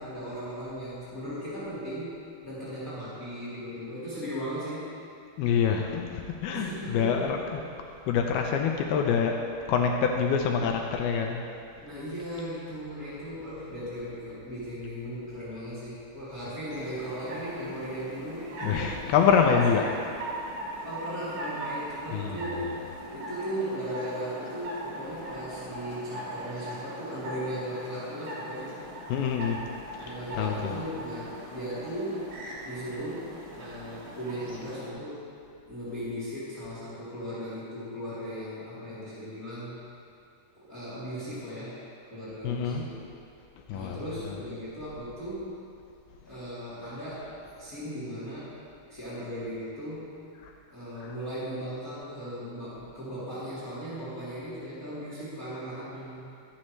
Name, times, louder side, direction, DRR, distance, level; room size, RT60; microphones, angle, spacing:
voice 1, 0.0-4.9 6.5-7.6 11.8-19.8 20.8-22.8 23.1-28.7 30.0-32.3 32.6-35.3 35.7-39.8 40.6-41.8 42.1-43.0 43.7-45.6 46.2-48.6 48.9-50.1 50.7-56.2, equal, 25° left, -11 dB, 3.4 m, -37 dB
voice 2, 5.4-7.4 8.1-9.4 9.7-11.4 18.6-19.9 20.5-20.6 22.1-22.4 29.1-29.6 30.4-30.8 42.4-42.8 43.7-44.0 50.4-50.5 51.0-51.1, left 6 dB, 80° left, 2 dB, 2.6 m, -26 dB
sound 1, 16.7-34.9, right 1 dB, 75° right, 4.6 m, -40 dB
24.5 x 8.7 x 3.2 m, 2.5 s
omnidirectional pair, 4.5 m